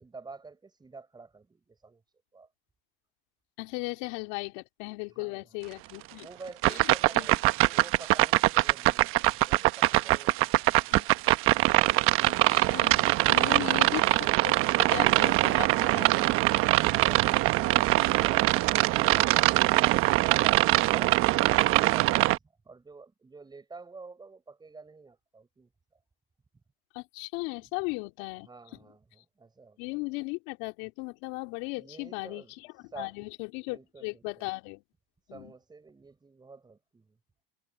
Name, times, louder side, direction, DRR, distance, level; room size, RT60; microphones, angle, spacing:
voice 1, 0.0-2.0 2.3-2.5 5.1-5.7 6.2-10.9 16.5-25.7 28.4-29.8 31.8-33.1 33.7-34.5 35.2-37.2, right 4 dB, 15° right, 7.2 m, -48 dB
voice 2, 3.6-6.3 7.1-7.3 10.9-11.1 12.3-16.3 26.9-28.5 29.8-34.8 35.3-35.5, left 27 dB, 60° left, 2.9 m, -37 dB
sound 1, 6.6-22.4, right 18 dB, 45° right, 1.1 m, -23 dB
hypercardioid pair, 110°, 30 cm